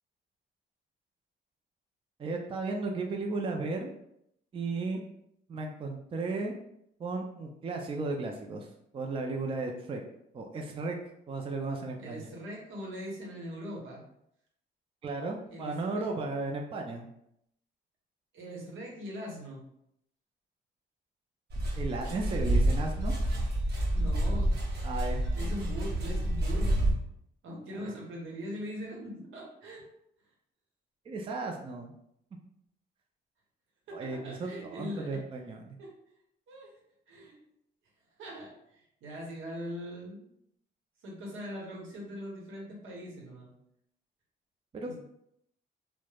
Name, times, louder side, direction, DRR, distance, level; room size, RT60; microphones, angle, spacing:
voice 1, 2.2-3.9 4.5-5.0 5.5-6.5 7.0-8.7 8.9-10.0 10.3-11.0 11.3-12.3 15.0-17.1 21.8-23.1 24.8-25.2 27.8-27.9 31.1-31.9 33.9-35.8 44.7-45.0, right 3 dB, 30° right, 2 dB, 0.3 m, -35 dB
voice 2, 12.0-14.0 15.5-16.0 18.3-19.6 23.9-24.5 25.3-26.8 27.4-29.8 33.9-35.2 35.8-35.9 36.5-36.7 37.1-37.4 38.2-40.3 41.0-43.5 44.8-45.0, equal, 80° right, -2 dB, 0.9 m, -41 dB
sound 1, 21.5-26.9, right 1 dB, 55° right, 0.8 m, -28 dB
3.1 x 2.1 x 2.3 m, 0.76 s
cardioid pair, 90°, 20 cm